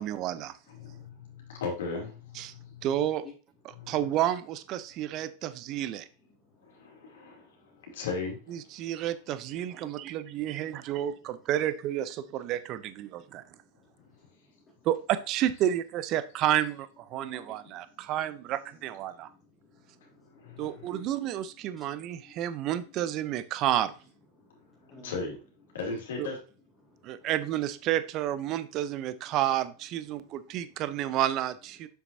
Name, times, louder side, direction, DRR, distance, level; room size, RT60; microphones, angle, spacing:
voice 1, 0.0-0.5 2.3-2.5 2.8-3.2 3.9-6.1 8.5-13.4 14.8-19.3 20.6-23.9 26.2-26.3 27.0-31.9, right 12 dB, 45° right, 14 dB, 0.6 m, -30 dB
voice 2, 0.7-2.9 3.7-3.9 6.6-7.5 7.8-8.6 20.4-20.9 25.0-25.4 25.7-26.4, left 4 dB, 80° left, -1 dB, 2.8 m, -37 dB
voice 3, 9.8-10.3 13.2-13.3 14.1-14.2 14.6-14.9 17.1-18.0 19.3-21.3 21.7-22.3 24.4-25.1 26.8-27.3 28.5-28.6 30.2-30.9, equal, 15° left, -4 dB, 2.2 m, -57 dB
7.4 x 6.0 x 2.7 m, 0.36 s
hypercardioid pair, 110°, 0 cm